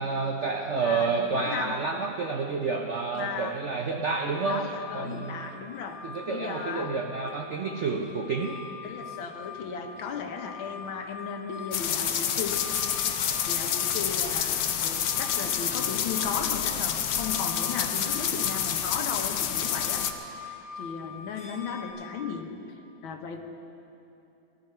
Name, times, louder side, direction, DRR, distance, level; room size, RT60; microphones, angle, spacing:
voice 1, 0.0-4.7 4.9-5.5 6.0-8.6, right 4 dB, 75° right, 2 dB, 0.6 m, -29 dB
voice 2, 0.8-1.8 3.1-3.6 4.4-7.0 8.8-12.6 13.4-20.1 20.8-22.6 23.0-23.4, left 6 dB, 90° left, 4 dB, 1.8 m, -36 dB
sound 1, 4.3-21.9, left 4 dB, 35° left, 3.9 m, -44 dB
sound 2, 11.7-20.1, left 9 dB, 65° left, 1.0 m, -28 dB
18.0 x 11.5 x 4.5 m, 2.9 s
omnidirectional pair, 2.1 m